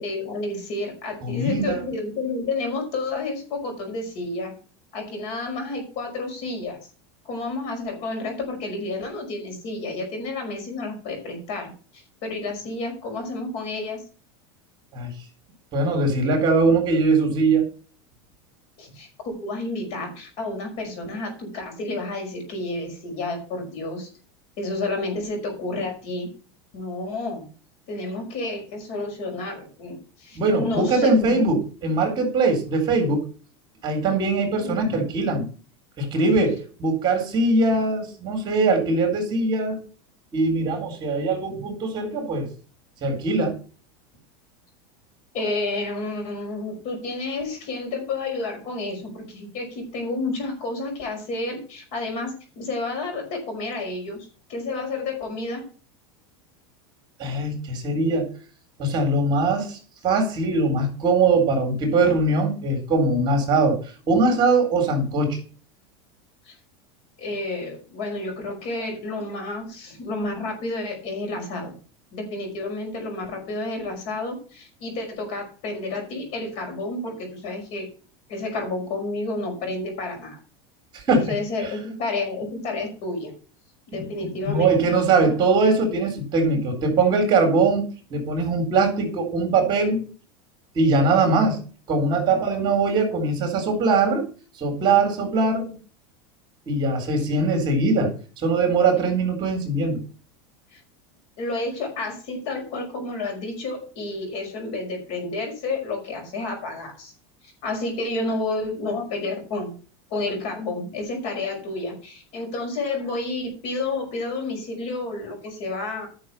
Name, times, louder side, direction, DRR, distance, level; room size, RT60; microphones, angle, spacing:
voice 1, 0.0-4.5 4.9-6.8 7.3-14.0 18.8-24.1 24.6-26.3 26.7-27.5 27.9-31.3 34.6-35.0 45.3-55.6 66.5-66.6 67.2-71.7 72.1-77.9 78.3-80.4 81.1-83.3 83.9-85.0 100.7-100.8 101.4-107.1 107.4-109.7 110.1-116.1, left 2 dB, 50° left, 4 dB, 5.2 m, -30 dB
voice 2, 1.2-1.8 14.9-15.1 15.7-17.6 30.4-33.2 33.8-35.4 36.0-39.8 40.3-42.5 43.0-43.6 57.2-58.3 58.8-59.8 60.0-65.4 80.9-81.2 81.6-81.7 84.0-87.8 88.1-90.0 90.7-91.6 91.9-94.3 94.6-95.7 96.7-100.0, right 3 dB, 35° right, 4 dB, 4.0 m, -21 dB
11.5 x 6.6 x 5.6 m, 0.38 s
supercardioid pair, 140°, 14 cm